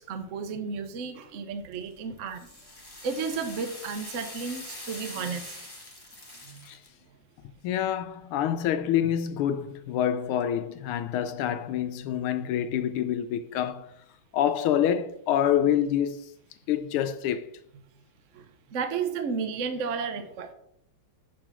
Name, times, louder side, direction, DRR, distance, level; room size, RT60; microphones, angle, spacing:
voice 1, 0.0-2.5 3.0-5.6 6.5-6.7 18.3-18.4 18.7-20.5, right 5 dB, 55° right, 0.8 m, -33 dB
sound 1, 1.7-6.9, left 1 dB, 15° left, 1.3 m, -43 dB
voice 2, 7.6-13.9 14.3-16.3 16.7-17.5, left 10 dB, 90° left, 1.5 m, -27 dB
7.5 x 4.9 x 6.0 m
omnidirectional pair, 2.3 m